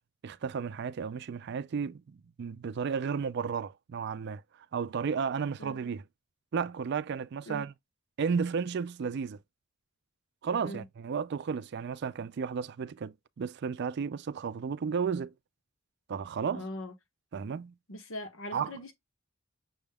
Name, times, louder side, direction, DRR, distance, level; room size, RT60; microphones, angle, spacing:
voice 1, 0.2-4.4 4.7-6.0 6.5-7.7 8.2-9.4 10.4-15.3 16.1-16.6 17.3-17.7 18.5-18.7, right 6 dB, 55° right, 0.4 m, -33 dB
voice 2, 16.5-16.9 17.9-18.9, left 1 dB, 80° left, 1.1 m, -41 dB
6.1 x 3.4 x 2.2 m
head